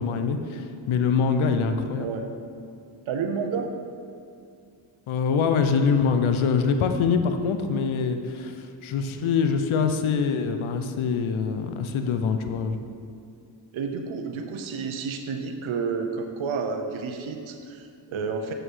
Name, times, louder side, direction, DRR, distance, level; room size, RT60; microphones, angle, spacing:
voice 1, 0.0-2.1 5.1-12.8, left 5 dB, 85° left, 7 dB, 0.8 m, -24 dB
voice 2, 2.0-2.3 3.1-3.7 13.7-18.5, right 5 dB, 80° right, 5 dB, 0.8 m, -30 dB
7.1 x 6.5 x 6.2 m, 2.4 s
cardioid pair, 65°, 47 cm